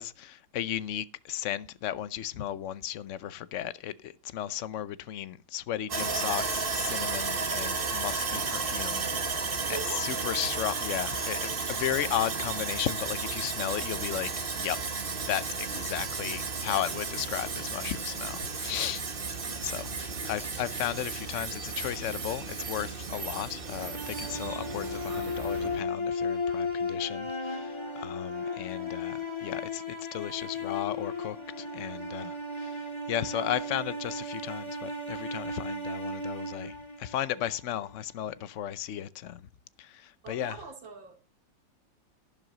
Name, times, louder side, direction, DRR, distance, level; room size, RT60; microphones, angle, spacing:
voice 1, 0.0-14.3 14.6-14.8 15.3-19.0 19.6-39.5 39.8-40.6, left 11 dB, 65° left, 0.7 m, -35 dB
Sawing, 5.9-25.8, right 4 dB, 30° right, 1.4 m, -33 dB
voice 2, 5.9-6.2 9.7-10.2 15.8-16.0 16.7-16.8 28.6-29.0 33.4-33.5 40.2-41.2, right 5 dB, 90° right, 3.2 m, -43 dB
sound 1, 23.6-37.8, left 2 dB, 15° left, 2.3 m, -35 dB
12.0 x 11.0 x 3.9 m
omnidirectional pair, 2.0 m